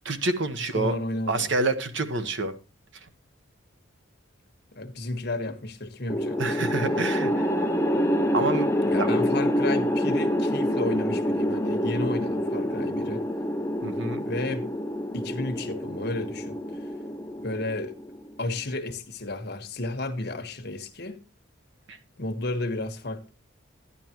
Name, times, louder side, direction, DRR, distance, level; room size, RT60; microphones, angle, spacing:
voice 1, 0.0-0.9 1.3-2.5 6.4-7.5 8.3-8.7 9.0-9.2 13.8-14.2 21.9-22.0, right 2 dB, 60° right, 1.1 m, -27 dB
voice 2, 0.7-1.5 4.7-6.7 8.9-13.2 14.2-14.7 15.1-16.9 17.4-17.9 18.4-21.2 22.2-23.3, left 2 dB, 55° left, 1.4 m, -32 dB
sound 1, 6.1-18.4, equal, 10° left, 0.7 m, -27 dB
11.0 x 11.0 x 3.0 m
head